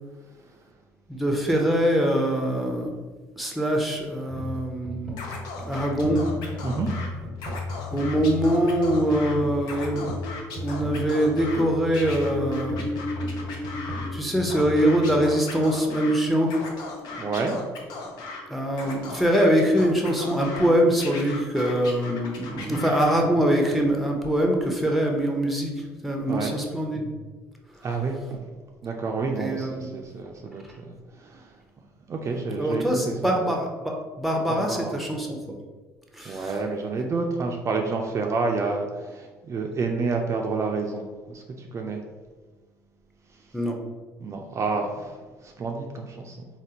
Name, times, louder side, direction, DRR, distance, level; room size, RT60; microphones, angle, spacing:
voice 1, 1.1-2.9 3.4-5.2 5.7-6.2 7.9-10.1 10.6-12.9 14.1-16.6 18.5-27.1 29.3-29.9 32.6-35.6 36.1-36.6 37.0-37.1 43.5-43.8, equal, ahead, 1 dB, 0.7 m, -23 dB
sound 1, 4.3-15.3, left 2 dB, 15° left, 1.3 m, -35 dB
Scratching (performance technique), 5.2-7.1 7.4-9.3 9.6-11.6 11.9-14.1 14.5-16.1 16.4-18.4 18.7-20.7 21.0-23.2, left 3 dB, 70° left, 0.7 m, -38 dB
sound 2, 9.3-23.6, left 2 dB, 35° left, 0.4 m, -39 dB
voice 2, 17.1-17.6 19.1-19.2 22.5-22.8 26.3-26.6 27.8-28.4 28.8-31.6 32.1-33.3 34.5-35.0 36.2-42.0 44.2-46.5, right 4 dB, 40° right, 2 dB, 0.4 m, -29 dB
3.4 x 2.3 x 2.8 m, 1.3 s
supercardioid pair, 70°, 8 cm